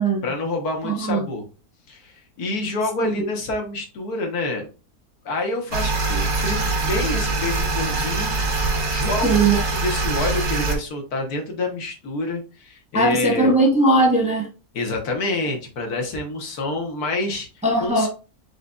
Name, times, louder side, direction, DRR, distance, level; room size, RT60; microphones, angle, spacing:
voice 1, 0.2-1.5 1.9-4.7 5.2-13.5 14.7-17.5 17.8-18.1, left 2 dB, 80° left, 1.7 m, -27 dB
voice 2, 0.8-1.2 3.0-3.1 9.2-9.6 12.9-14.5 17.6-18.1, right 2 dB, 5° right, 0.7 m, -19 dB
sound 1, 5.7-10.8, right 3 dB, 90° right, 1.9 m, -23 dB
4.9 x 4.0 x 2.3 m
omnidirectional pair, 1.6 m